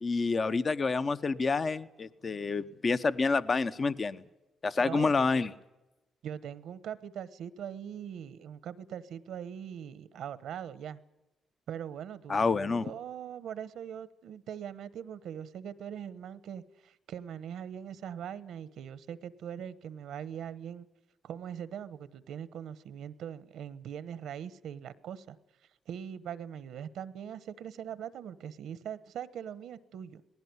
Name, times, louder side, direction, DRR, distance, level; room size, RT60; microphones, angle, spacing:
voice 1, 0.0-4.2 4.6-5.5 12.3-12.9, left 4 dB, 35° left, 12 dB, 0.8 m, -28 dB
voice 2, 4.8-5.6 6.2-11.0 11.7-20.9 21.2-25.4 25.9-30.2, right 9 dB, 85° right, 16 dB, 1.1 m, -41 dB
19.5 x 16.5 x 9.5 m, 1.0 s
cardioid pair, 100°, 0 cm